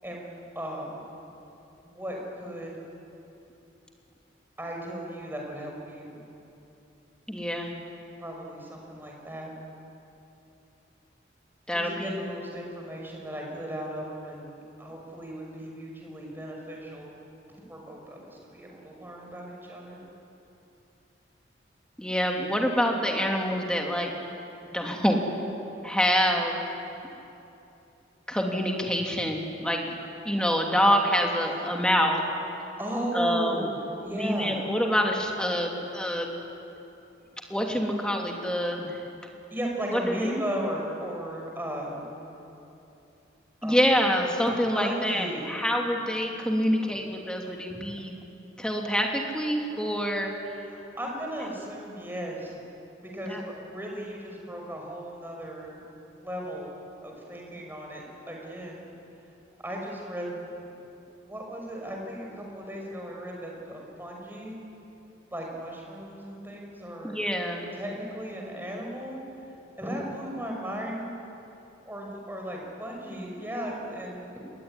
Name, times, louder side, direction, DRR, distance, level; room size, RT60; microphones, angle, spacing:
voice 1, 0.0-1.0 1.8-2.8 4.6-6.2 8.2-9.5 11.7-17.2 17.7-20.0 25.1-25.3 31.4-31.8 32.8-34.6 39.5-42.0 43.6-43.8 44.8-45.6 50.6-52.6 53.0-55.8 56.2-58.9 59.6-60.5 61.2-64.6 65.3-67.2 67.7-69.2 69.8-71.1 71.9-74.3, equal, 10° right, -1 dB, 5.8 m, -36 dB
voice 2, 7.3-7.8 11.7-12.2 22.0-24.1 24.7-25.2 25.8-26.6 28.3-30.0 30.2-32.2 33.1-33.7 34.2-36.4 37.5-39.0 39.9-40.3 43.6-48.2 48.6-50.3 53.3-53.4 67.0-67.7, equal, 5° left, 0 dB, 3.1 m, -26 dB
27.5 x 21.5 x 10.0 m, 2.8 s
head